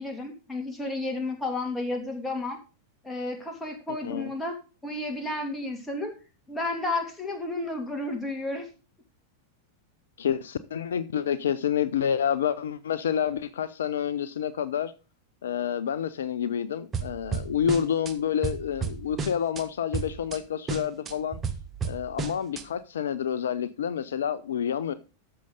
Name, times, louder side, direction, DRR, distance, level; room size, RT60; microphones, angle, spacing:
voice 1, 0.0-2.6 3.0-4.6 4.8-6.1 6.5-8.7, left 2 dB, 10° left, 2.9 m, -32 dB
voice 2, 10.2-14.9 15.4-21.4 21.8-24.9, left 8 dB, 65° left, 0.6 m, -28 dB
sound 1, 16.9-18.1 18.4-19.6 19.9-20.4 20.7-22.6, right 5 dB, 20° right, 1.4 m, -32 dB
13.5 x 6.7 x 3.9 m
figure-of-eight pair, 90°, 0 cm